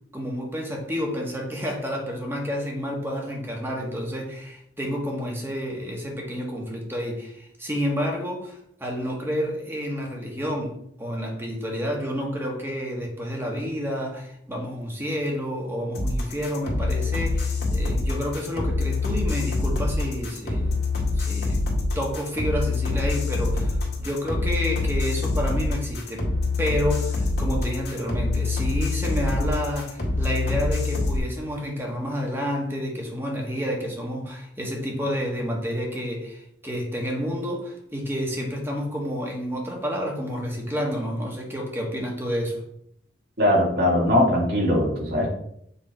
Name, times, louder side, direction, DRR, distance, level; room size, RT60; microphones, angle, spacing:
voice 1, 0.1-20.8 21.2-21.6 21.9-26.3 26.6-42.6, equal, 15° right, -1 dB, 1.4 m, -29 dB
sound 1, 15.9-31.2, left 3 dB, 60° left, 1.9 m, -25 dB
voice 2, 43.4-45.3, left 1 dB, 60° right, -2 dB, 2.2 m, -20 dB
7.0 x 3.6 x 4.4 m, 0.71 s
head